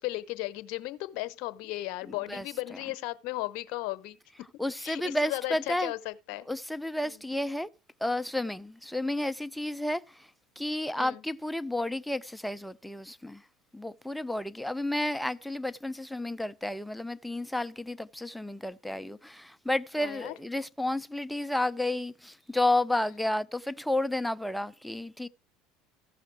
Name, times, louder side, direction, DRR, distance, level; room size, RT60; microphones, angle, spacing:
voice 1, 0.0-4.5 4.8-6.5 7.0-7.3 11.0-11.2 19.9-20.3 22.9-23.0, left 17 dB, 65° left, 0.9 m, -36 dB
voice 2, 2.1-2.5 2.7-2.8 4.6-5.9 6.5-7.7 8.0-10.3 10.6-13.4 13.7-25.3, left 1 dB, 5° left, 0.6 m, -31 dB
15.0 x 5.8 x 4.6 m
hypercardioid pair, 75°, 0 cm